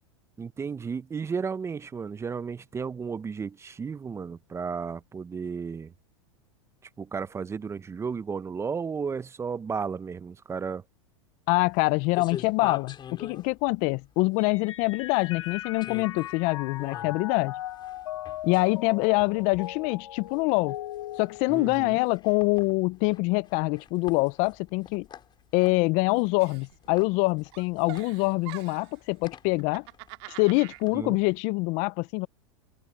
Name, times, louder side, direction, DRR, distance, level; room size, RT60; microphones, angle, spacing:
voice 1, 0.4-5.9 7.0-10.8 21.5-22.0 30.9-31.2, right 5 dB, 15° right, 0.8 m, -33 dB
voice 2, 11.5-17.5 18.4-20.8 21.2-25.1 25.5-29.8 30.4-32.3, left 26 dB, 50° left, 0.6 m, -25 dB
sound 1, 11.6-31.4, left 9 dB, 30° left, 4.7 m, -46 dB
Mallet percussion, 14.4-22.1, left 13 dB, 80° left, 2.7 m, -39 dB
Giggle, 26.4-27.2 27.5-29.0 29.5-30.8, right 27 dB, 60° right, 1.9 m, -44 dB
hypercardioid pair, 115°, 16 cm